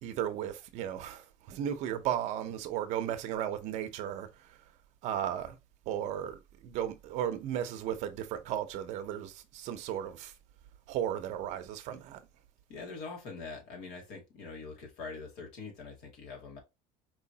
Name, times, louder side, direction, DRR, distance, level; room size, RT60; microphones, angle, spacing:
voice 1, 0.0-4.6 5.0-5.6 5.9-10.3 10.9-12.2, right 10 dB, 60° right, 0.7 m, -35 dB
voice 2, 12.7-16.6, left 4 dB, 70° left, 2.3 m, -44 dB
4.8 x 3.1 x 2.8 m
cardioid pair, 155°, 14 cm